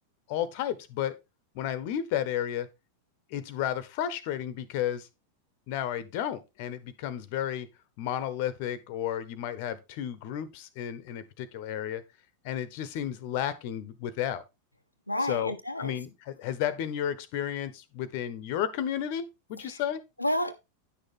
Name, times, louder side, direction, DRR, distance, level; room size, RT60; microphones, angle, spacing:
voice 1, 0.3-1.1 1.5-2.7 3.3-5.1 5.7-7.7 8.0-12.0 12.4-14.4 15.3-20.0, left 10 dB, 45° left, 1.0 m, -32 dB
voice 2, 15.1-16.0 19.6-19.8 20.2-20.5, left 1 dB, 85° left, 0.7 m, -30 dB
9.8 x 6.5 x 3.7 m
figure-of-eight pair, 90°, 0 cm